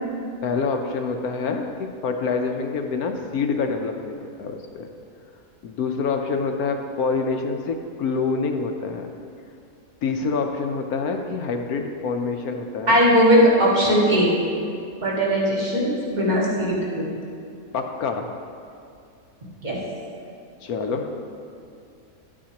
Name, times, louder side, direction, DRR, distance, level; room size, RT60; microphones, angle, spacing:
voice 1, 0.4-4.9 5.6-9.1 10.0-13.0 17.7-18.3 20.6-21.2, left 4 dB, 70° left, 4 dB, 1.1 m, -26 dB
voice 2, 12.9-14.3 15.0-17.0 19.6-19.8, equal, 25° right, -6 dB, 1.9 m, -19 dB
12.0 x 8.7 x 2.9 m, 2.5 s
omnidirectional pair, 1.7 m